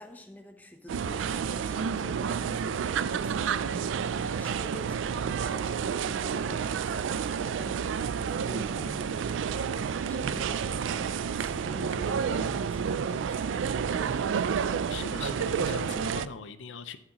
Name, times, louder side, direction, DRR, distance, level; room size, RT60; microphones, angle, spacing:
voice 1, 0.0-14.2, left 1 dB, 10° left, 5 dB, 0.8 m, -47 dB
sound 1, 0.9-16.3, right 6 dB, 80° right, 0.3 m, -30 dB
voice 2, 14.8-17.0, left 5 dB, 75° left, 12 dB, 0.6 m, -40 dB
12.5 x 7.4 x 3.0 m, 0.78 s
head